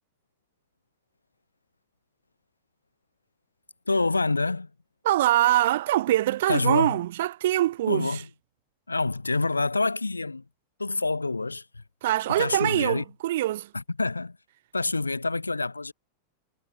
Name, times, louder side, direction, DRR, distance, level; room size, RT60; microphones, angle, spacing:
voice 1, 3.9-4.7 6.5-7.0 7.9-8.3 8.9-10.4 10.8-11.8 12.4-13.0 13.7-14.4 14.7-15.9, left 3 dB, 80° left, 1.1 m, -27 dB
voice 2, 5.0-8.2 12.0-13.7, right 14 dB, 55° right, 0.7 m, -24 dB
figure-of-eight pair, 90°, 0 cm